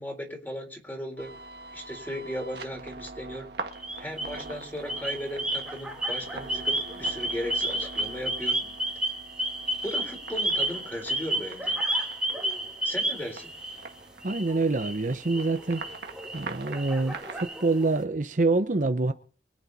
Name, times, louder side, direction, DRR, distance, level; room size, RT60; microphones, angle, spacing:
voice 1, 0.0-1.3 1.7-3.5 4.0-8.5 9.8-12.1 12.8-13.5, equal, 10° left, 4.0 m, -36 dB
sound 1, 1.2-17.5, right 3 dB, 65° right, 1.6 m, -43 dB
sound 2, 3.7-4.5 4.9-13.9 14.2-17.9, right 1 dB, 5° right, 2.1 m, -31 dB
voice 2, 14.2-15.8 16.3-19.1, right 3 dB, 45° right, 0.8 m, -26 dB
24.0 x 8.8 x 4.1 m
head